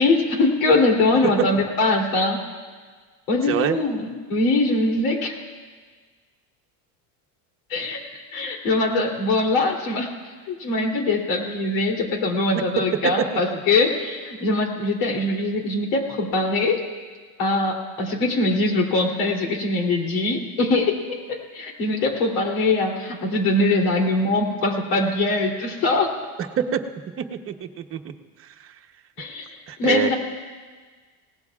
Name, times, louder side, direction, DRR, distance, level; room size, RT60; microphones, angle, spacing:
voice 1, 0.0-2.4 3.3-5.4 7.7-10.1 10.5-16.8 17.4-26.1 29.2-29.5 29.8-30.2, left 2 dB, 85° left, 1 dB, 3.2 m, -22 dB
voice 2, 3.5-3.8 13.5-13.6 26.6-26.8 27.2-28.0 28.4-28.8 29.7-30.1, right 9 dB, 30° right, 4 dB, 0.9 m, -26 dB
27.5 x 18.5 x 2.4 m, 1.5 s
cardioid pair, 150°, 42 cm